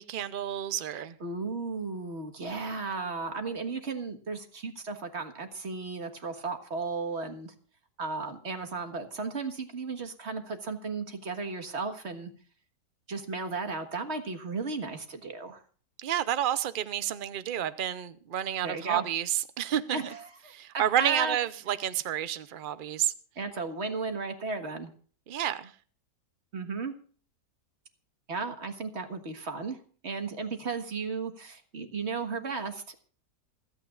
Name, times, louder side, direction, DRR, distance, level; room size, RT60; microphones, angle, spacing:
voice 1, 0.0-1.1 16.0-20.0 20.5-23.1 25.3-25.7, right 11 dB, 80° right, 0.4 m, -30 dB
voice 2, 0.9-7.5 8.0-12.3 13.1-15.6 18.6-19.0 19.9-21.4 23.3-24.9 26.5-26.9 28.3-33.0, right 4 dB, 40° right, 1.7 m, -35 dB
27.5 x 9.3 x 2.4 m
omnidirectional pair, 1.8 m